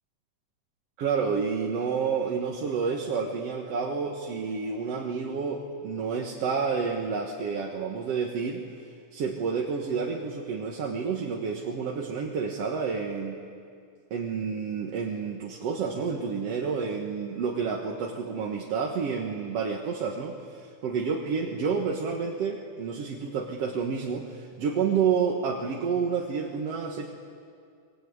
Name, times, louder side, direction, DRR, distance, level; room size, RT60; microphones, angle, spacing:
voice 1, 1.0-8.6 9.1-13.4 14.1-27.1, right 5 dB, 55° right, 0 dB, 2.3 m, -29 dB
24.5 x 22.0 x 9.6 m, 2.3 s
omnidirectional pair, 3.7 m